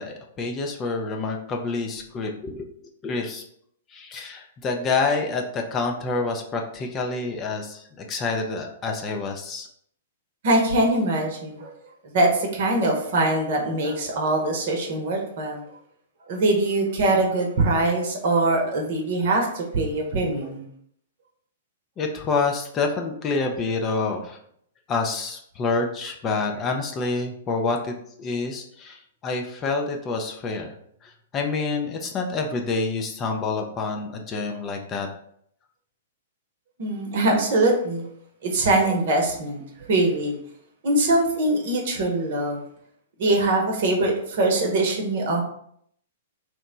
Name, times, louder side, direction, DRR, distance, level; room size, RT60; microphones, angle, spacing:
voice 1, 0.0-3.4 3.9-9.7 22.0-24.4 24.9-30.7 31.0-35.1, left 3 dB, 25° left, 2 dB, 0.5 m, -27 dB
voice 2, 10.4-11.7 12.1-15.6 16.3-20.6 36.8-38.1 38.4-40.4 40.8-42.6 43.2-45.4, right 2 dB, 60° right, 2 dB, 0.8 m, -22 dB
3.0 x 2.1 x 3.8 m, 0.68 s
hypercardioid pair, 115°, 0 cm